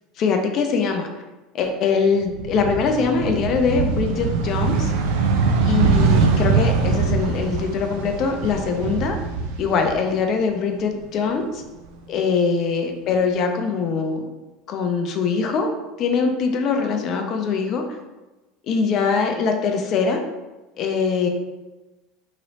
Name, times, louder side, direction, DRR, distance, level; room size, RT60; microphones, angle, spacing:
voice 1, 0.2-1.1 1.5-4.9 5.6-9.2 9.6-11.6 12.1-14.2 14.7-15.7 16.0-17.8 18.7-20.2 20.8-21.3, left 5 dB, 50° left, 4 dB, 0.5 m, -22 dB
sound 1, 2.2-10.4 10.7-11.9, right 4 dB, 70° right, 0.4 m, -22 dB
3.0 x 2.9 x 2.8 m, 1.1 s
hypercardioid pair, 80°, 0 cm